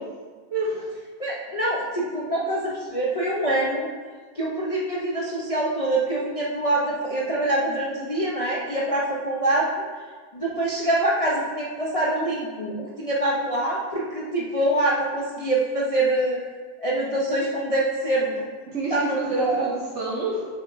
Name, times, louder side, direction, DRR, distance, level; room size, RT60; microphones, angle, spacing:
voice 1, 0.5-0.9 18.7-20.5, right 3 dB, 55° right, -2 dB, 1.0 m, -28 dB
voice 2, 1.2-3.9 4.3-9.7 10.3-16.4 16.8-18.5 18.9-19.7, right 1 dB, 35° left, -5 dB, 0.6 m, -25 dB
7.8 x 7.2 x 2.6 m, 1.5 s
omnidirectional pair, 1.6 m